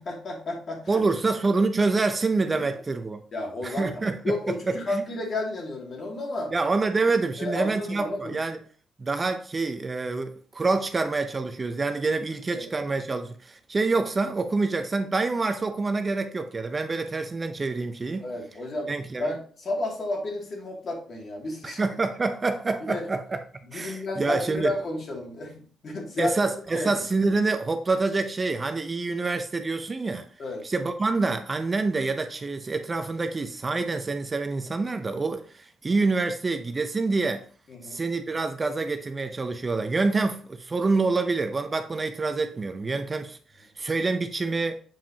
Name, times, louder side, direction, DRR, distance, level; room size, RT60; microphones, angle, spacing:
voice 1, 0.0-1.0 2.5-2.8 3.3-6.5 7.4-8.4 12.5-12.6 18.2-18.9 19.2-21.8 22.9-23.1 23.6-26.3 26.7-27.0 30.4-30.6 37.7-38.0, left 2 dB, 50° left, 2.5 m, -32 dB
voice 2, 0.9-3.2 3.6-5.0 6.5-8.6 9.0-18.2 18.9-19.3 21.6-23.4 23.7-24.7 26.2-30.3 30.6-37.5 37.8-44.8, right 3 dB, 30° right, 0.6 m, -27 dB
7.3 x 5.0 x 2.9 m
cardioid pair, 90°, 0 cm